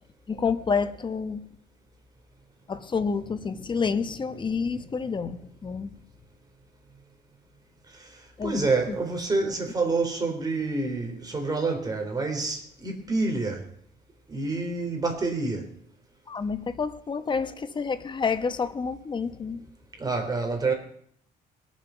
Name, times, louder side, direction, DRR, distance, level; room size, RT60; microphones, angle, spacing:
voice 1, 0.3-1.5 2.7-5.9 8.4-9.0 16.3-19.6, left 5 dB, 30° left, 1.1 m, -29 dB
voice 2, 7.9-13.6 14.3-15.7 20.0-20.7, right 3 dB, 20° right, 3.9 m, -28 dB
22.0 x 7.4 x 5.8 m
cardioid pair, 110°, 17 cm